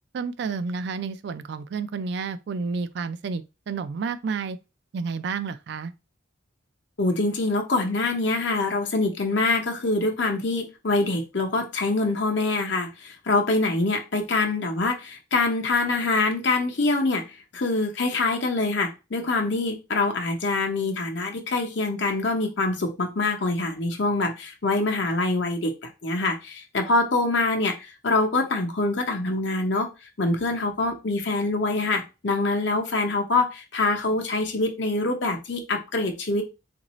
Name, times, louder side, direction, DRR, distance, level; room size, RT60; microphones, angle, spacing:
voice 1, 0.1-4.6 4.9-5.9, right 5 dB, 55° right, 0.3 m, -30 dB
voice 2, 7.0-25.7 26.0-29.9 30.2-36.4, left 2 dB, 60° left, 0.8 m, -25 dB
3.9 x 2.6 x 3.0 m
head